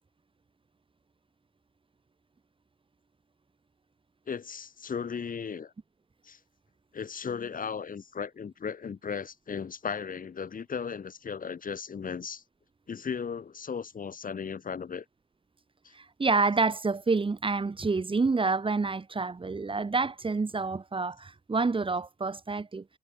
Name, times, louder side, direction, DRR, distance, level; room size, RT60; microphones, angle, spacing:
voice 1, 4.3-5.7 6.2-6.4 6.9-12.4 12.9-15.1 15.8-15.9, left 6 dB, 45° left, 5.3 m, -36 dB
voice 2, 15.9-22.8, right 4 dB, 25° right, 2.8 m, -28 dB
cardioid pair, 90°, 20 cm